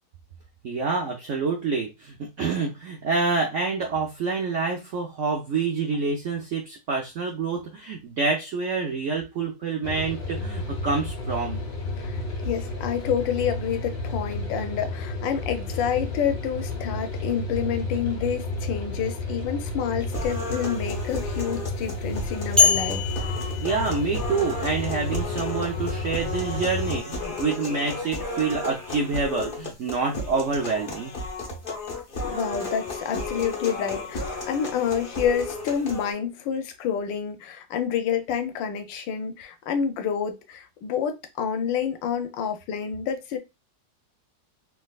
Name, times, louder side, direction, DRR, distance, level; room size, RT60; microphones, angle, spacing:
voice 1, 0.6-11.6 23.6-31.1, right 4 dB, 75° right, 0.6 m, -27 dB
sound 1, 9.8-27.0, left 2 dB, 70° left, 1.5 m, -32 dB
voice 2, 12.0-23.0 32.2-43.4, left 8 dB, 85° left, 1.3 m, -28 dB
sound 2, 20.1-36.1, left 2 dB, 45° left, 0.6 m, -34 dB
sound 3, 22.6-24.6, left 5 dB, ahead, 0.7 m, -24 dB
3.4 x 2.7 x 2.3 m
omnidirectional pair, 1.9 m